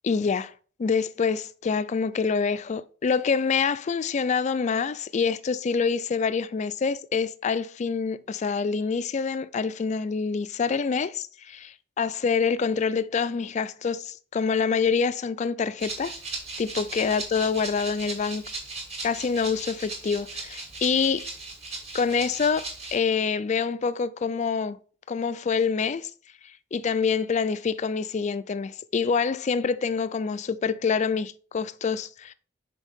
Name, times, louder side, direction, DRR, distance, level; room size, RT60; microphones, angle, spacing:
voice 1, 0.0-0.5 0.8-16.1 16.6-18.5 19.0-21.3 21.9-24.8 25.1-26.1 26.7-32.3, left 5 dB, 35° left, 0.3 m, -26 dB
Rattle (instrument), 15.8-23.0, right 3 dB, 30° right, 2.3 m, -37 dB
6.3 x 4.6 x 3.5 m
head